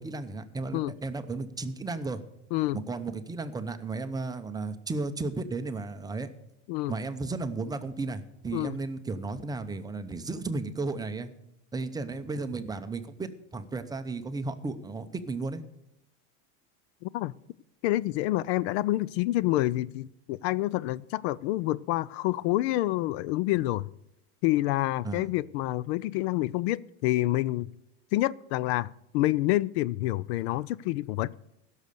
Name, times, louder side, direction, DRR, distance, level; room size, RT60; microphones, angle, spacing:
voice 1, 0.0-2.2 2.7-6.3 6.9-11.3 11.7-15.6 25.0-25.3, right 3 dB, 10° right, 0.6 m, -34 dB
voice 2, 2.5-2.8 6.7-6.9 8.5-8.8 17.0-17.3 17.8-23.9 24.4-27.7 28.1-31.3, left 17 dB, 70° left, 0.5 m, -28 dB
16.0 x 6.6 x 6.8 m
supercardioid pair, 140°, 33 cm